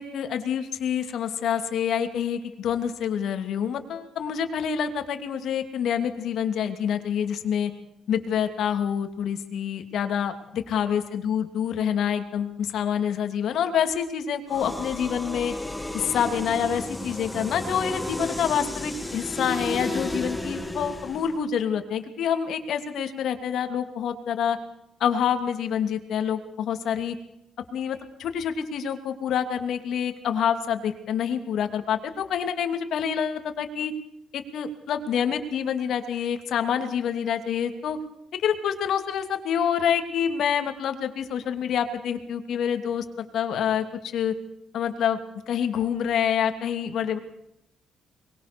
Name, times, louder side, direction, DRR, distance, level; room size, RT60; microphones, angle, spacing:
voice 1, 0.0-7.7 8.1-15.5 15.9-24.6 25.0-27.2 27.7-33.9 34.3-38.0 38.4-44.3 44.7-45.2 45.5-47.2, left 8 dB, 70° left, 7 dB, 2.7 m, -27 dB
sound 1, 14.5-21.4, left 1 dB, 10° left, 2.1 m, -33 dB
23.5 x 21.5 x 6.9 m, 0.81 s
cardioid pair, 90°, 0 cm